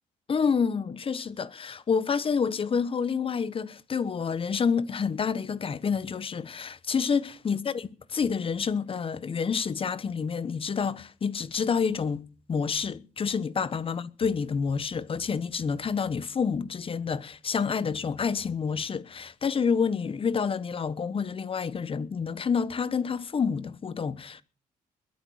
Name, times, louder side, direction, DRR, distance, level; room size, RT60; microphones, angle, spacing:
voice 1, 0.3-7.7 8.1-24.4, left 6 dB, 35° left, 1.1 m, -28 dB
21.5 x 8.6 x 6.4 m
cardioid pair, 125°, 15 cm